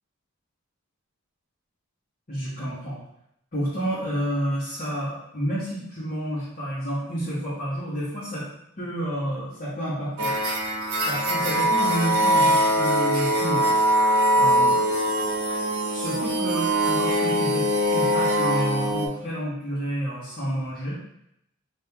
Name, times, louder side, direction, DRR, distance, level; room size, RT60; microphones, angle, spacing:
voice 1, 2.3-3.0 3.5-8.4 8.8-10.3 11.1-13.8 14.4-14.7 15.9-21.0, equal, 45° left, -12 dB, 1.2 m, -30 dB
sound 1, 10.2-19.1, equal, 80° right, 0.8 m, -22 dB
3.6 x 2.8 x 2.8 m, 0.77 s
head